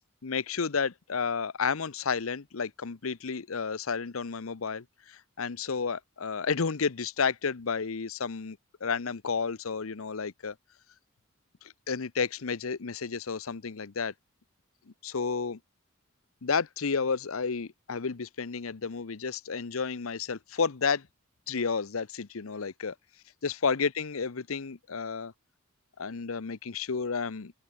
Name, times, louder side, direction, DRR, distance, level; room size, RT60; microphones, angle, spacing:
voice 1, 0.2-10.5 11.9-14.1 15.0-15.6 16.4-21.1 21.5-22.9 23.4-25.3 26.0-27.5, left 5 dB, 80° left, 0.8 m, -31 dB
open air
head